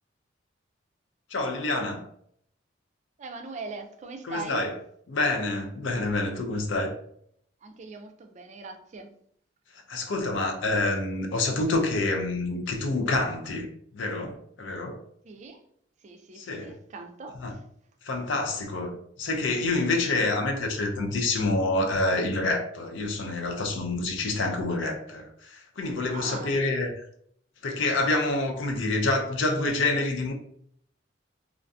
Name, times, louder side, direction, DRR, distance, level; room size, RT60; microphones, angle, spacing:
voice 1, 1.3-2.0 4.3-4.7 5.1-6.9 9.9-13.7 13.9-15.0 16.4-16.8 17.4-17.6 18.1-26.9 27.6-30.3, left 2 dB, 80° left, 0.5 m, -27 dB
voice 2, 3.2-4.6 7.6-9.1 15.2-15.6 16.0-17.6 26.1-26.6, right 4 dB, 40° right, 0.3 m, -41 dB
2.5 x 2.4 x 2.3 m
head